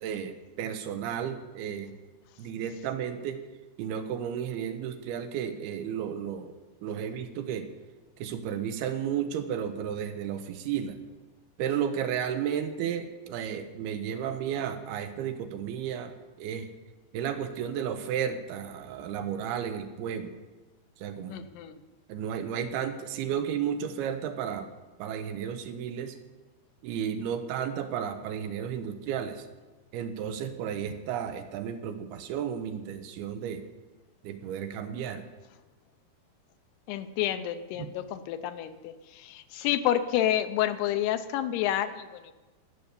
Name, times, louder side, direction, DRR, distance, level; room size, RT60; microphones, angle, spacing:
voice 1, 0.0-2.0 2.4-3.4 3.8-6.5 6.8-7.7 8.2-11.0 11.6-16.1 16.4-16.7 17.1-20.4 21.0-21.4 22.1-24.7 25.0-26.2 26.8-29.5 29.9-33.6 34.2-35.2 37.8-37.9, right 8 dB, 80° right, 8 dB, 2.7 m, -33 dB
voice 2, 21.3-21.8 36.9-42.3, left 11 dB, 90° left, 10 dB, 2.8 m, -29 dB
16.0 x 6.9 x 8.3 m, 1.2 s
omnidirectional pair, 4.7 m